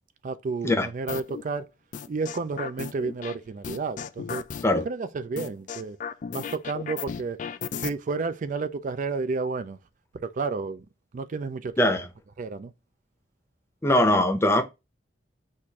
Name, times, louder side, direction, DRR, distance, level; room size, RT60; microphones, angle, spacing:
voice 1, 0.2-1.7 2.1-4.4 4.8-6.0 6.3-7.4 7.8-9.8 10.2-10.9 11.1-11.9 12.4-12.7, right 4 dB, 45° right, 0.4 m, -31 dB
sound 1, 1.1-1.4 1.9-3.3 3.6-4.8 5.4-7.9, left 7 dB, 45° left, 0.3 m, -34 dB
voice 2, 11.8-12.1 13.8-14.6, left 1 dB, 15° left, 0.7 m, -21 dB
6.4 x 2.5 x 2.8 m
head